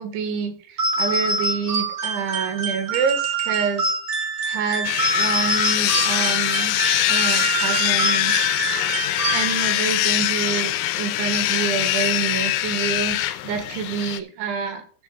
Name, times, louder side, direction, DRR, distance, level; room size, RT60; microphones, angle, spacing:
voice 1, 0.0-3.9 4.4-6.8 7.1-8.4 9.3-13.2 13.4-14.8, right 6 dB, 75° right, 7 dB, 3.8 m, -27 dB
sound 1, 0.8-9.8, right 3 dB, 50° right, 1.7 m, -25 dB
sound 2, 4.8-14.2, left 14 dB, 85° left, 3.0 m, -23 dB
15.0 x 7.8 x 2.3 m, 0.42 s
omnidirectional pair, 5.5 m